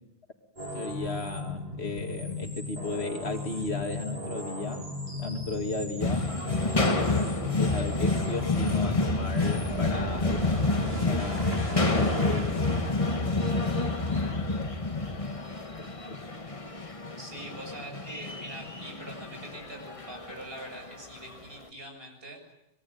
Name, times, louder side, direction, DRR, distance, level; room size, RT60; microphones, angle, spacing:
sound 1, 0.6-12.9, left 1 dB, 45° right, 6.9 m, -37 dB
voice 1, 0.7-4.8 5.2-6.2 7.6-10.4 10.7-11.5 12.0-12.6 13.0-13.6 16.1-16.2, left 3 dB, 85° left, 4 dB, 2.8 m, -35 dB
sound 2, 6.0-21.3, left 2 dB, 30° left, 1.7 m, -29 dB
voice 2, 17.2-22.5, right 1 dB, 65° right, 3 dB, 7.7 m, -43 dB
26.0 x 22.0 x 9.4 m, 0.86 s
omnidirectional pair, 1.1 m